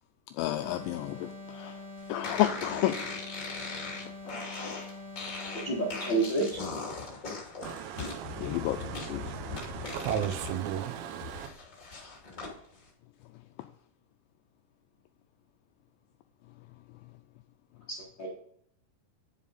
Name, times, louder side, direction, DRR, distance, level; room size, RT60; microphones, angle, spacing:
voice 1, 0.4-1.7 2.1-3.0 8.4-9.2, left 14 dB, 85° left, 2.6 m, -30 dB
sound 1, 0.6-6.5, left 2 dB, 15° right, 3.8 m, -45 dB
sound 2, 2.2-10.5 10.9-12.5, left 4 dB, 30° left, 2.4 m, -39 dB
voice 2, 5.5-6.6 17.9-18.3, right 3 dB, 65° left, 1.1 m, -30 dB
voice 3, 7.6-11.5, right 9 dB, 85° right, 3.6 m, -36 dB
11.0 x 7.3 x 4.2 m
omnidirectional pair, 5.8 m